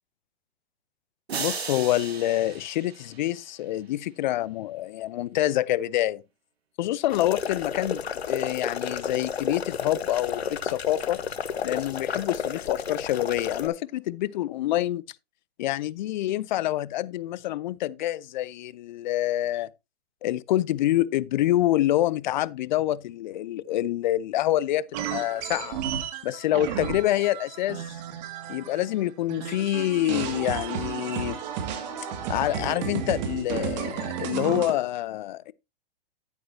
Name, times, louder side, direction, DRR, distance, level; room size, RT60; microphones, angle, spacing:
sound 1, 1.3-3.6, right 6 dB, 75° right, 1.9 m, -36 dB
voice 1, 1.4-6.2 6.8-11.2 11.6-15.0 15.6-19.7 20.2-25.8 26.2-27.9 28.5-31.4 32.3-35.5, left 14 dB, 50° left, 0.5 m, -27 dB
sound 2, 7.1-13.7, left 7 dB, 80° left, 1.0 m, -32 dB
sound 3, 24.9-29.0 29.3-34.7, right 8 dB, 45° right, 2.0 m, -33 dB
10.5 x 9.3 x 2.7 m
hypercardioid pair, 115°, 31 cm